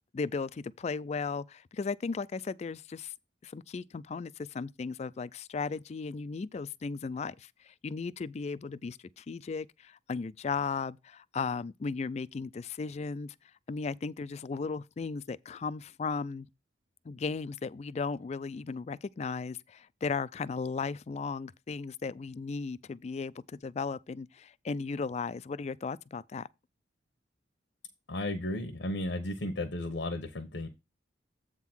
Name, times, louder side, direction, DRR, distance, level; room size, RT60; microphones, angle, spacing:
voice 1, 0.1-3.1 3.4-13.3 13.7-16.5 17.1-26.5, left 4 dB, 35° left, 0.3 m, -36 dB
voice 2, 28.1-30.7, left 1 dB, 80° left, 1.0 m, -34 dB
8.1 x 3.7 x 6.0 m
head